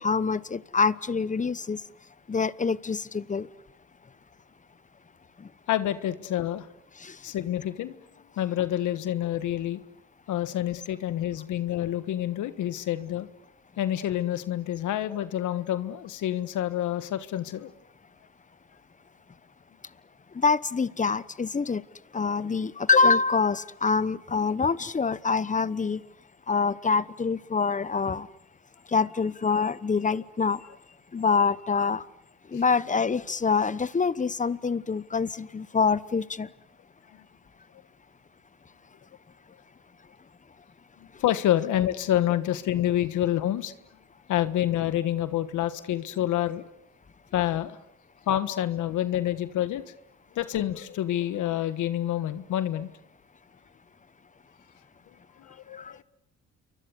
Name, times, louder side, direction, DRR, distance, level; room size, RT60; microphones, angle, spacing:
voice 1, 0.0-1.8 2.3-3.5 5.4-5.5 7.0-7.3 20.3-21.8 22.1-26.0 26.5-28.3 28.9-30.6 31.1-32.0 32.5-36.5 55.7-56.0, left 5 dB, 25° left, 1.1 m, -25 dB
voice 2, 5.7-6.7 7.2-8.0 8.4-9.8 10.3-13.3 13.8-17.7 32.5-32.6 41.2-43.7 44.3-46.6 47.3-47.8 48.3-49.8 50.3-52.9 55.4-56.0, left 12 dB, 80° left, 1.5 m, -28 dB
29.5 x 23.5 x 8.2 m
cardioid pair, 90°, 30 cm